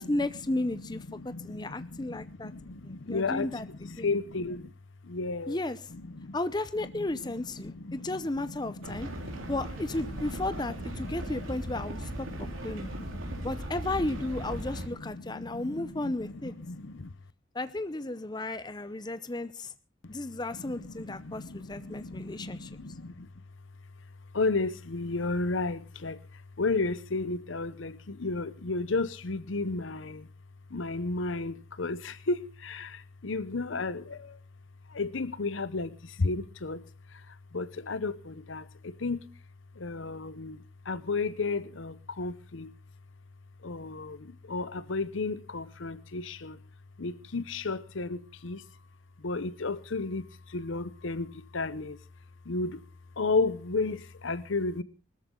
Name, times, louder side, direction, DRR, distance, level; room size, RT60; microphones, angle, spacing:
voice 1, 0.0-2.5 2.8-4.1 5.5-5.9 6.3-9.1 9.5-12.9 13.4-16.5 17.5-19.7 20.1-22.7, left 2 dB, 20° left, 0.6 m, -34 dB
voice 2, 1.2-3.6 4.0-4.7 5.1-5.6 6.1-6.4 7.6-8.1 8.6-9.5 12.3-13.5 14.5-14.6 15.3-16.1 16.7-17.1 20.9-23.3 24.3-26.2 26.6-30.3 30.7-34.4 34.9-35.9 36.2-36.8 37.5-39.2 39.8-40.6 40.9-42.7 43.6-46.6 47.0-48.6 49.2-50.2 50.5-52.0 52.5-52.8 53.2-54.8, left 3 dB, 75° left, 0.8 m, -33 dB
sound 1, 8.8-14.9, right 1 dB, 90° right, 3.7 m, -38 dB
20.0 x 13.5 x 3.8 m
head